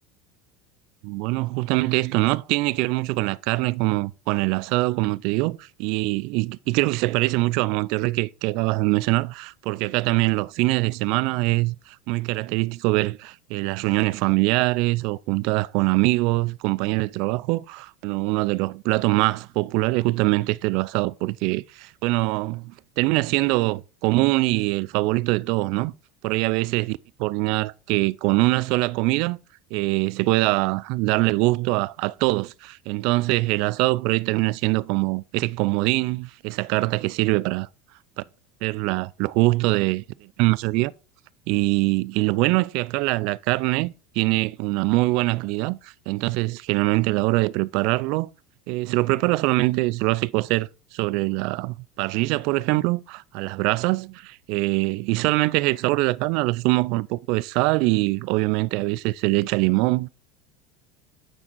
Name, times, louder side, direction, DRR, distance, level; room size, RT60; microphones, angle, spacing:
voice 1, 1.0-25.9 26.2-29.4 29.7-37.7 38.6-40.9 41.5-48.3 48.7-60.1, right 22 dB, 65° right, 0.3 m, -23 dB
8.8 x 4.0 x 4.5 m
hypercardioid pair, 85°, 0 cm